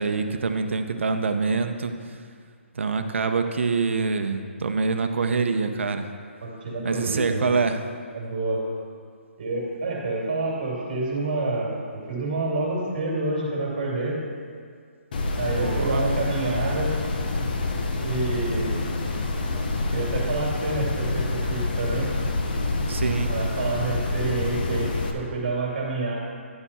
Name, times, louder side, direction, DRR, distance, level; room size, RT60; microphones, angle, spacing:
voice 1, 0.0-2.2 2.7-6.1 6.8-7.9 15.6-16.1 22.9-23.3, right 4 dB, 65° right, 7 dB, 0.8 m, -25 dB
voice 2, 6.4-7.5 8.1-8.6 9.4-14.2 15.4-16.9 18.0-18.8 19.9-22.1 23.1-26.1, right 2 dB, 40° right, -3 dB, 2.4 m, -28 dB
sound 1, 15.1-25.1, left 2 dB, 40° left, 0.8 m, -27 dB
10.5 x 6.9 x 4.3 m, 2.1 s
hypercardioid pair, 170°, 7 cm